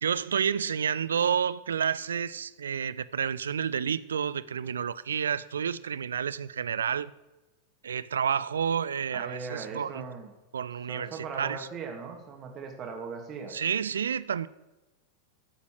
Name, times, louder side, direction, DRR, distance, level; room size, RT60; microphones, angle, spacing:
voice 1, 0.0-7.1 7.8-10.1 10.5-11.7 13.5-14.5, right 7 dB, 70° right, 19 dB, 0.4 m, -30 dB
voice 2, 9.1-10.3 10.9-13.5, right 5 dB, 30° right, 3 dB, 2.5 m, -39 dB
13.0 x 8.2 x 6.4 m, 1.1 s
figure-of-eight pair, 90°, 0 cm